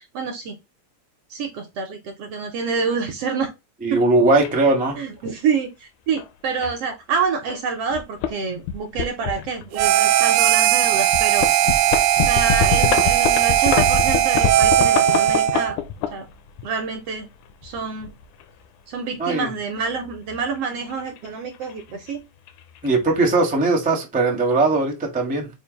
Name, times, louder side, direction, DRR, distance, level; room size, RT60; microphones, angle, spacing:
voice 1, 0.1-0.6 1.3-3.5 3.9-4.0 5.0-11.4 12.2-15.8 16.1-16.3 16.6-17.3 17.6-18.1 18.9-22.2, right 5 dB, 70° right, 1.5 m, -27 dB
voice 2, 3.8-5.0 19.2-19.5 22.8-25.5, right 3 dB, 10° right, 0.3 m, -19 dB
sound 1, 4.4-4.5 5.4-5.6 6.2-6.3 6.6-6.8 7.5-7.6 7.9-8.3 8.6-9.9 10.4-10.5 11.1-16.7 17.5-18.4 20.1-21.3 21.5-21.8 22.1-22.2 22.5-22.9, left 7 dB, 80° left, 2.2 m, -25 dB
Harmonica, 9.8-15.8, right 12 dB, 85° right, 2.1 m, -18 dB
7.2 x 2.6 x 5.2 m
omnidirectional pair, 3.6 m